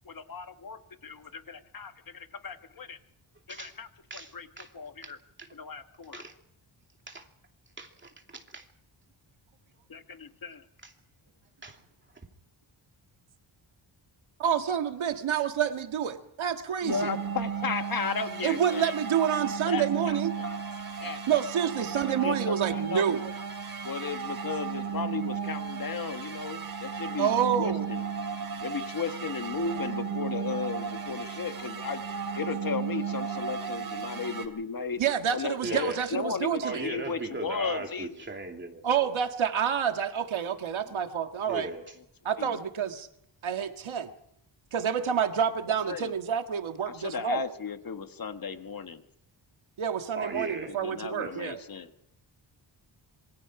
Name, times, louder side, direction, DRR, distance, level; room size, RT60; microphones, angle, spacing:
voice 1, 0.0-3.0 3.5-3.9 4.1-4.5 4.7-5.2 5.5-6.2 9.9-10.6 16.8-18.9 19.6-20.5 21.0-21.2 22.0-23.0 23.8-27.3 27.6-28.0 28.6-32.0 32.3-35.0 35.3-38.1 42.4-42.6 45.9-46.1 47.0-49.0 50.7-51.9, left 5 dB, 45° left, 8 dB, 1.3 m, -35 dB
voice 2, 4.1-4.7 5.0-5.1 5.4-5.5 6.1-6.3 7.1-7.3 7.8-8.7 10.8-10.9 11.6-11.8 35.6-36.1 36.6-39.2 41.5-41.9 50.1-50.7 51.2-51.4, right 3 dB, 25° right, 2 dB, 2.8 m, -38 dB
voice 3, 14.4-17.1 18.4-20.4 21.3-23.3 27.2-27.9 35.0-36.9 38.8-41.7 42.3-43.1 43.4-44.1 44.7-47.4 49.8-51.6, right 8 dB, 85° right, 6 dB, 1.8 m, -28 dB
sound 1, 16.9-34.5, right 6 dB, 50° right, 3.0 m, -35 dB
26.5 x 23.0 x 4.9 m, 0.75 s
wide cardioid pair, 150°, 47 cm